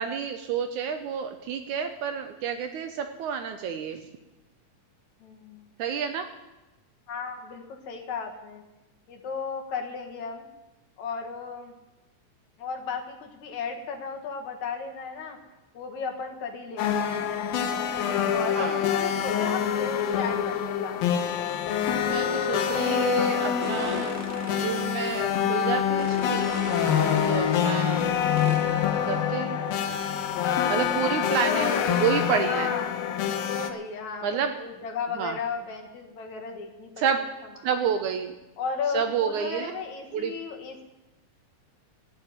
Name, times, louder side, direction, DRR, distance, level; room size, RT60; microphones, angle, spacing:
voice 1, 0.0-4.0 5.8-6.3 18.6-18.8 22.0-24.2 24.5-26.5 27.3-28.1 29.0-29.6 30.7-32.7 34.2-34.5 35.1-35.4 37.0-37.2 37.6-38.4 38.9-39.7 40.1-40.3, right 7 dB, 75° right, 7 dB, 2.0 m, -29 dB
voice 2, 5.2-5.7 7.1-8.6 9.1-10.5 11.0-11.7 12.6-15.4 15.7-17.1 18.3-21.0 30.4-31.9 32.5-33.1 33.5-37.1 38.6-40.8, left 5 dB, 60° left, 2 dB, 2.6 m, -34 dB
sound 1, 16.8-33.7, left 9 dB, 85° left, 2.8 m, -26 dB
sound 2, 23.6-25.0 26.0-27.8 28.4-28.6, right 1 dB, 30° right, 1.2 m, -37 dB
13.5 x 9.1 x 9.4 m, 1.0 s
omnidirectional pair, 4.0 m